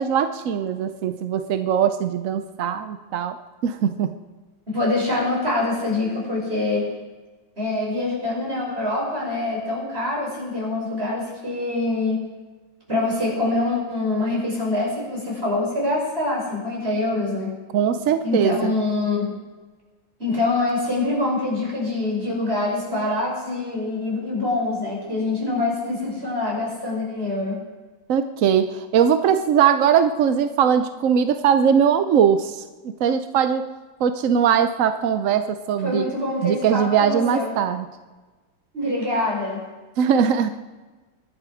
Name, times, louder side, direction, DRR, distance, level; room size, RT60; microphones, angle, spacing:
voice 1, 0.0-3.4 3.6-4.1 17.7-18.7 28.1-33.6 34.0-36.1 36.4-37.9 40.0-40.5, right 8 dB, 65° right, 9 dB, 0.8 m, -20 dB
voice 2, 4.7-6.9 7.6-12.2 12.9-17.5 18.2-19.3 20.2-27.6 35.8-37.5 38.7-39.6, left 2 dB, 30° right, -3 dB, 6.1 m, -25 dB
24.0 x 11.0 x 4.9 m, 1.3 s
omnidirectional pair, 2.1 m